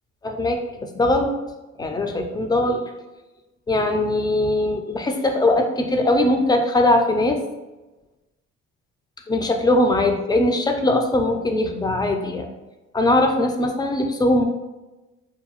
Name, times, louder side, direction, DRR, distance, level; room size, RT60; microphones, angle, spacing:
voice 1, 0.2-1.3 1.8-2.8 3.7-7.4 9.3-12.5 12.9-14.4, left 1 dB, 15° left, 4 dB, 0.3 m, -20 dB
2.8 x 2.2 x 2.8 m, 1.1 s
cardioid pair, 90°, 30 cm